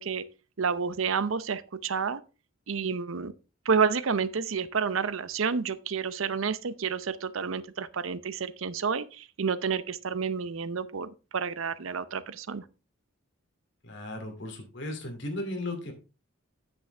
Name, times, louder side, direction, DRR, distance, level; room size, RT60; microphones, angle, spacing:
voice 1, 0.0-2.2 2.7-3.3 3.7-12.6, right 5 dB, 80° right, 0.7 m, -30 dB
voice 2, 13.8-15.9, left 1 dB, 60° left, 2.5 m, -36 dB
9.3 x 8.1 x 3.3 m
head